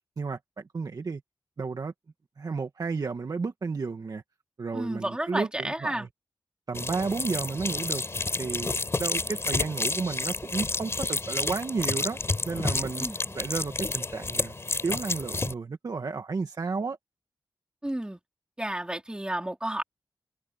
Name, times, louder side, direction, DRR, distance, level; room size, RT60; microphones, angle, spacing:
voice 1, 0.2-1.2 1.6-1.9 2.4-4.2 4.6-6.1 6.7-8.0 8.4-12.2 12.4-13.1 13.3-14.5 14.8-17.0, right 4 dB, 60° right, 1.7 m, -32 dB
voice 2, 4.7-6.1 13.0-13.3 17.8-18.2 18.6-19.8, right 1 dB, 10° right, 3.6 m, -31 dB
sound 1, 6.7-15.5, left 3 dB, 35° left, 4.5 m, -30 dB
open air
wide cardioid pair, 100°, 7 cm